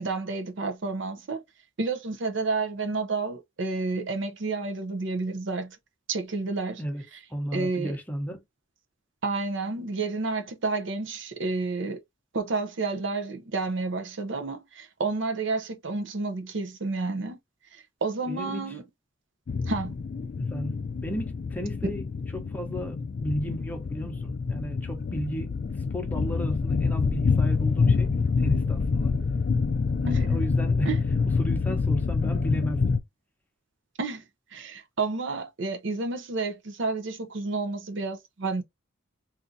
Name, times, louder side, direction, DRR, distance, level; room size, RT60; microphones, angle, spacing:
voice 1, 0.0-1.4 1.8-5.8 6.1-6.8 7.5-8.0 9.2-12.0 12.3-17.4 17.7-18.8 19.7-19.9 21.8-21.9 30.1-30.4 30.8-31.0 34.0-34.2 34.5-38.6, right 3 dB, 65° right, 0.7 m, -30 dB
voice 2, 7.3-8.4 18.3-18.8 20.5-20.7 21.0-22.1 22.3-23.0 23.2-29.1 30.0-30.9 31.4-33.0, equal, 10° left, 0.9 m, -34 dB
sound 1, 19.5-33.0, left 4 dB, 45° left, 0.3 m, -26 dB
3.8 x 2.6 x 2.6 m
head